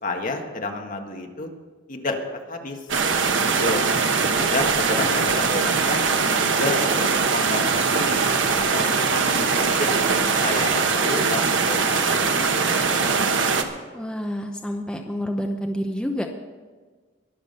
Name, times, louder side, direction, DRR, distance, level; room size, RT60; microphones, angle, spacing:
voice 1, 0.0-1.5 1.9-2.2 2.5-2.8 3.5-3.8 4.4-6.0 6.4-8.2 8.6-9.9 10.4-13.5, left 2 dB, 45° left, 3 dB, 1.7 m, -30 dB
sound 1, 2.9-13.6, right 5 dB, 80° right, 1.2 m, -21 dB
voice 2, 4.0-4.4 13.9-16.3, equal, 5° left, 3 dB, 0.7 m, -29 dB
21.5 x 7.1 x 5.6 m, 1.4 s
head